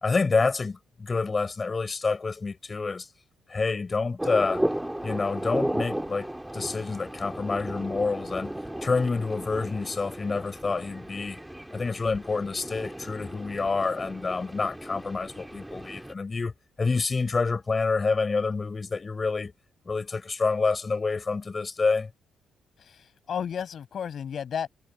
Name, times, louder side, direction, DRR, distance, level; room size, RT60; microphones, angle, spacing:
voice 1, 0.0-3.1 3.5-4.6 5.0-6.3 6.5-8.5 8.8-11.4 11.7-16.5 16.8-19.5 19.9-22.1, left 4 dB, 30° left, 4.3 m, -28 dB
sound 1, 4.2-16.1, right 1 dB, 5° right, 1.9 m, -35 dB
voice 2, 22.8-24.7, left 8 dB, 55° left, 6.6 m, -33 dB
cardioid pair, 105°, 0 cm